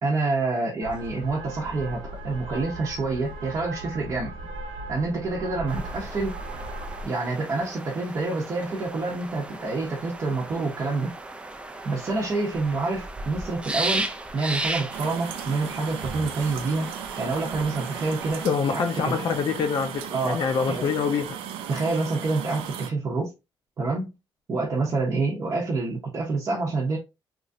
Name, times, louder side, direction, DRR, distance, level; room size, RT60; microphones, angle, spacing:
voice 1, 0.0-4.3 4.9-6.4 7.0-11.1 11.8-16.9 17.2-19.2 20.1-20.4 20.7-20.9 21.7-23.3 23.8-24.1 24.5-27.0, right 3 dB, 35° right, 0.7 m, -27 dB
sound 1, 0.8-7.1, right 2 dB, 75° right, 1.0 m, -37 dB
sound 2, 5.7-18.5, right 2 dB, 10° right, 0.3 m, -35 dB
sound 3, 14.9-22.9, right 9 dB, 90° right, 0.4 m, -36 dB
voice 2, 18.4-21.4, left 6 dB, 50° left, 0.5 m, -25 dB
3.0 x 2.4 x 2.6 m
cardioid pair, 140°, 9 cm